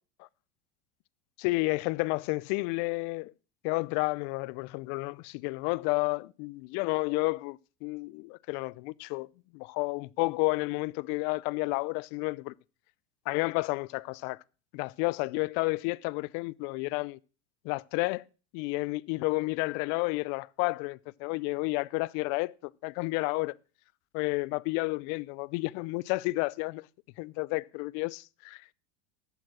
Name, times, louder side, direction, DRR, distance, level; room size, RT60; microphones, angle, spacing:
voice 1, 1.4-3.3 3.6-9.3 9.5-12.5 13.3-14.4 14.7-17.2 17.6-18.2 18.5-23.6 24.1-26.9 27.2-28.6, left 25 dB, 55° left, 0.5 m, -31 dB
11.0 x 7.1 x 6.1 m
supercardioid pair, 120°, 35 cm